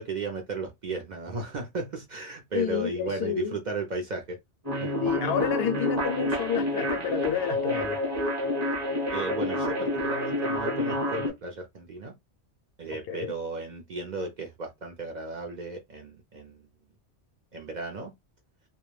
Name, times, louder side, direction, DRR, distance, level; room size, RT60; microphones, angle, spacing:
voice 1, 0.0-4.4 4.8-4.9 9.1-12.1 12.8-16.6 17.5-18.1, right 3 dB, 55° right, 0.5 m, -35 dB
voice 2, 2.5-3.5 5.0-8.0 13.1-13.3, left 8 dB, 70° left, 0.8 m, -29 dB
sound 1, 4.7-11.3, left 1 dB, 15° right, 0.7 m, -29 dB
2.3 x 2.0 x 3.1 m
omnidirectional pair, 1.1 m